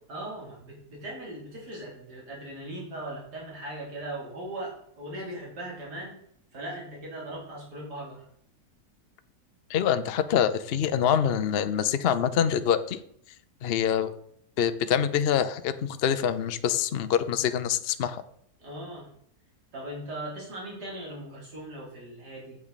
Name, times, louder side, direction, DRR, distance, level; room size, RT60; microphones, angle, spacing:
voice 1, 0.1-6.2 6.5-8.2 9.7-9.8 18.6-19.1 19.7-22.6, right 1 dB, 85° right, -4 dB, 3.9 m, -39 dB
voice 2, 9.7-13.0 13.6-14.1 14.6-18.2, left 8 dB, 60° left, 11 dB, 0.6 m, -25 dB
9.0 x 7.7 x 4.1 m, 0.68 s
omnidirectional pair, 1.7 m